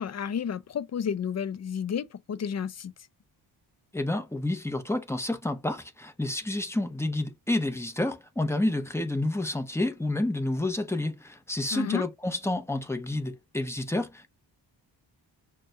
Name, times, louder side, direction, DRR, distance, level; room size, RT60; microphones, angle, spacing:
voice 1, 0.0-2.9 11.7-12.1, left 7 dB, 35° left, 0.5 m, -31 dB
voice 2, 3.9-14.3, left 2 dB, 5° left, 0.8 m, -29 dB
6.1 x 2.3 x 2.5 m
cardioid pair, 75°, 46 cm